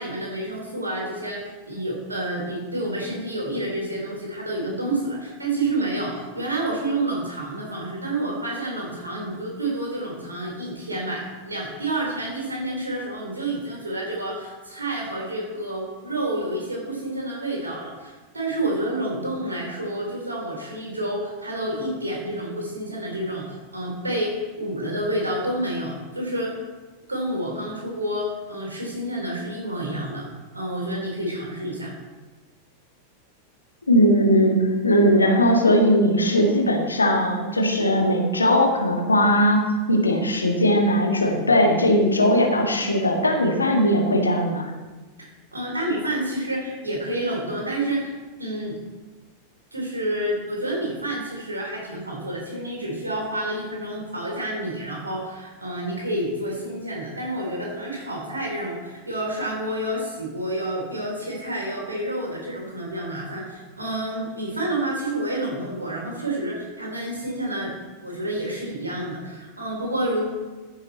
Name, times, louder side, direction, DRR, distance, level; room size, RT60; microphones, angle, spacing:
voice 1, 0.0-26.6 27.1-30.3 30.5-31.9 45.2-48.1 48.4-48.8 49.7-67.7 68.0-70.3, right 1 dB, 80° right, -1 dB, 3.7 m, -29 dB
voice 2, 33.9-39.6 39.9-44.7, equal, 80° left, 3 dB, 1.7 m, -19 dB
14.5 x 6.8 x 4.3 m, 1.3 s
figure-of-eight pair, 90°, 0 cm